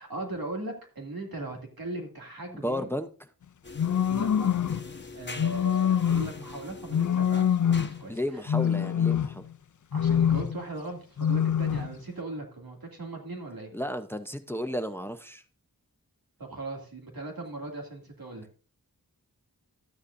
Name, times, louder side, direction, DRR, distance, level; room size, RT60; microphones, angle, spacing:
voice 1, 0.0-2.9 4.0-4.6 5.2-8.2 9.9-13.7 16.4-18.5, right 2 dB, 85° right, 1 dB, 2.5 m, -38 dB
voice 2, 2.6-3.1 8.1-9.4 13.7-15.4, equal, 5° left, 9 dB, 0.7 m, -33 dB
sound 1, 3.6-8.3, left 3 dB, 30° left, 1.1 m, -44 dB
sound 2, 3.8-4.8 5.4-6.4 6.9-8.0 8.5-9.5 9.9-10.6 11.2-11.9, left 8 dB, 60° left, 0.5 m, -25 dB
12.5 x 9.6 x 2.6 m, 0.37 s
wide cardioid pair, 65°, 35 cm